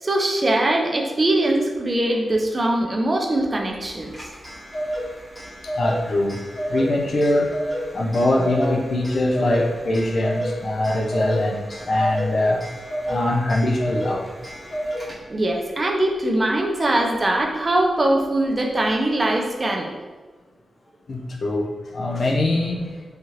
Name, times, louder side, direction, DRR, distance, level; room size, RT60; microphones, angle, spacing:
voice 1, 0.0-4.3 15.3-20.0, right 1 dB, 30° right, 2 dB, 0.4 m, -22 dB
Clock, 3.9-15.5, equal, ahead, 0.9 m, -31 dB
voice 2, 5.6-6.4 6.7-7.5 7.9-12.6 13.1-14.3 21.1-23.0, left 1 dB, 60° left, 0 dB, 0.4 m, -22 dB
3.0 x 2.4 x 2.8 m, 1.3 s
wide cardioid pair, 115°, 0 cm